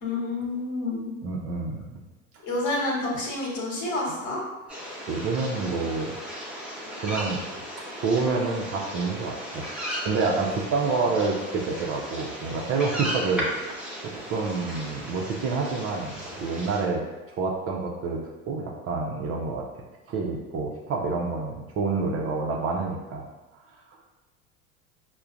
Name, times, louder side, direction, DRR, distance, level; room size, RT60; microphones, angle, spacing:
voice 1, 0.0-1.1 2.4-4.4, left 2 dB, 45° left, -3 dB, 1.3 m, -29 dB
voice 2, 1.2-2.0 5.1-6.1 7.0-7.4 8.0-9.7 10.0-13.5 14.0-17.0 17.3-18.2 18.5-19.7 20.1-23.3, right 4 dB, 35° right, -1 dB, 0.6 m, -28 dB
sound 1, 4.7-16.8, equal, 5° right, 0.8 m, -36 dB
5.5 x 2.2 x 2.5 m, 1.1 s
hypercardioid pair, 75°, 41 cm